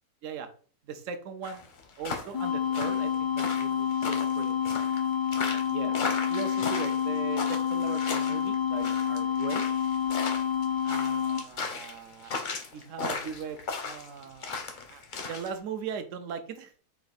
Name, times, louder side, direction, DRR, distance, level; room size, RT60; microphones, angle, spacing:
voice 1, 0.8-1.7 2.0-4.8 5.5-5.9 6.3-9.7 10.8-14.6 14.9-16.7, right 7 dB, 65° right, 8 dB, 0.8 m, -39 dB
sound 1, 1.4-15.5, left 4 dB, 55° left, 0.5 m, -36 dB
sound 2, 2.3-11.4, left 8 dB, 85° left, 1.3 m, -28 dB
4.5 x 2.5 x 3.9 m, 0.42 s
omnidirectional pair, 1.7 m